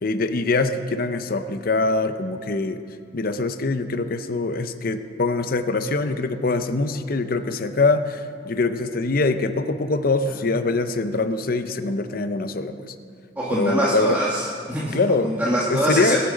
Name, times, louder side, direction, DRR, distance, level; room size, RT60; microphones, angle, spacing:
voice 1, 0.0-2.8 3.1-12.9 13.5-14.2 14.9-15.3 15.7-16.2, left 3 dB, 55° left, 9 dB, 0.7 m, -23 dB
voice 2, 13.4-15.0 15.2-16.2, right 1 dB, 10° right, -6 dB, 1.5 m, -23 dB
21.0 x 8.7 x 5.2 m, 2.2 s
head